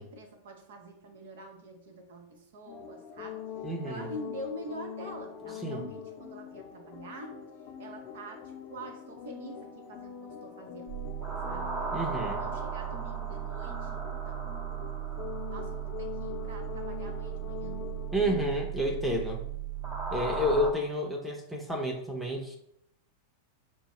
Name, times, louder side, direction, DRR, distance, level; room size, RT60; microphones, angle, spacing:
voice 1, 0.0-3.4 3.8-7.4 7.8-11.0 11.5-11.7 12.3-14.4 15.5-17.9, right 1 dB, 65° right, 4 dB, 0.8 m, -45 dB
sound 1, 2.7-18.5, left 8 dB, 45° left, 0.6 m, -44 dB
voice 2, 3.6-4.1 5.6-5.9 11.9-12.4 18.1-19.4 20.1-22.6, equal, ahead, -3 dB, 0.7 m, -30 dB
sound 2, 10.9-20.7, right 7 dB, 35° right, 0.9 m, -36 dB
5.3 x 2.0 x 3.1 m, 0.75 s
figure-of-eight pair, 95°, 0 cm